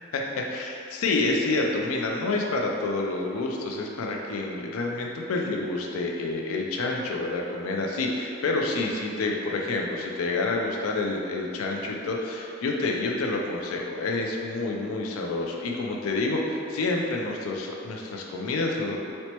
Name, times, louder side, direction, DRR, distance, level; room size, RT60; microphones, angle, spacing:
voice 1, 0.1-19.1, left 2 dB, 90° left, 0 dB, 0.4 m, -28 dB
4.3 x 2.1 x 2.8 m, 2.6 s
head